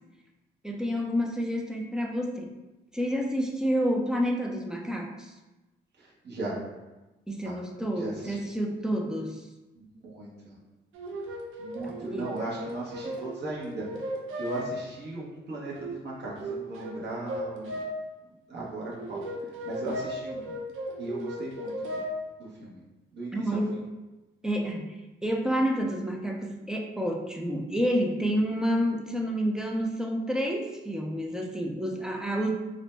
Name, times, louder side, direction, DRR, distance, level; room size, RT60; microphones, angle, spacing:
voice 1, 0.6-2.5 2.9-5.3 7.3-9.4 12.0-12.3 23.3-23.8 24.4-24.9 25.2-32.5, equal, 5° right, 1 dB, 0.4 m, -29 dB
voice 2, 6.0-6.6 7.4-7.6 8.0-8.5 9.7-10.6 11.6-13.9 14.4-17.8 18.5-19.3 19.6-20.5 21.0-22.0 22.4-22.8 23.1-23.8, right 2 dB, 55° right, -5 dB, 1.0 m, -37 dB
sound 1, 10.9-14.7 15.7-16.0 16.4-16.9 17.3-17.9 18.9-22.1, right 1 dB, 75° right, 0.5 m, -36 dB
2.5 x 2.1 x 3.2 m, 1.1 s
supercardioid pair, 65°, 21 cm